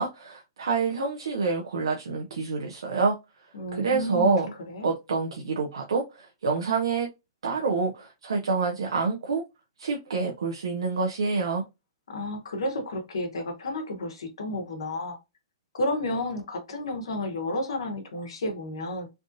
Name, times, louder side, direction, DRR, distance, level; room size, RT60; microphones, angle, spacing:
voice 1, 0.0-3.2 3.7-4.5 4.8-7.1 7.4-9.4 9.8-11.6, right 4 dB, 90° right, 0.7 m, -27 dB
voice 2, 3.5-4.9 12.1-15.2 15.7-19.1, left 1 dB, 85° left, 1.1 m, -31 dB
3.4 x 2.6 x 2.5 m
hypercardioid pair, 140°, 3 cm